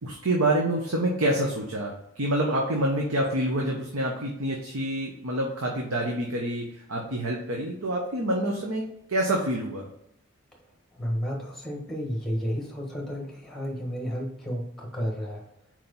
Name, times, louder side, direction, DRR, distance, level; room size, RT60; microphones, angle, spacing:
voice 1, 0.0-1.9 2.2-9.9, right 1 dB, 70° right, -1 dB, 1.0 m, -27 dB
voice 2, 10.9-15.4, equal, ahead, -1 dB, 1.3 m, -32 dB
4.5 x 4.4 x 5.3 m, 0.80 s
head